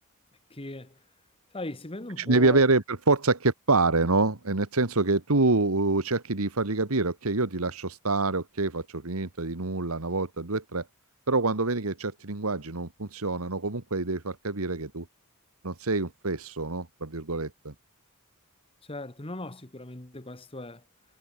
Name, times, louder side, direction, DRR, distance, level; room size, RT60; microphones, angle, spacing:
voice 1, 0.5-1.0 1.5-2.6 18.8-20.8, left 2 dB, 25° left, 1.7 m, -38 dB
voice 2, 2.2-10.9 11.3-15.1 15.6-17.7, right 3 dB, 75° right, 1.8 m, -26 dB
head